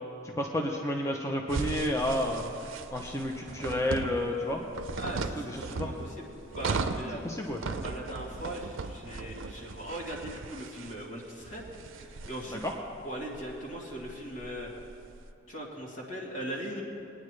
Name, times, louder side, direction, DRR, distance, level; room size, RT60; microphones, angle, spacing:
voice 1, 0.2-2.4 2.9-4.6 5.4-5.9 7.2-7.6 12.6-12.7, left 1 dB, 15° left, 1 dB, 0.6 m, -31 dB
sound 1, 1.5-15.2, right 4 dB, 75° right, 0.5 m, -38 dB
voice 2, 5.0-6.3 6.5-7.3 7.8-12.6 13.0-14.7 15.5-16.8, right 1 dB, 70° left, -5 dB, 2.3 m, -39 dB
20.0 x 9.5 x 3.2 m, 2.7 s
head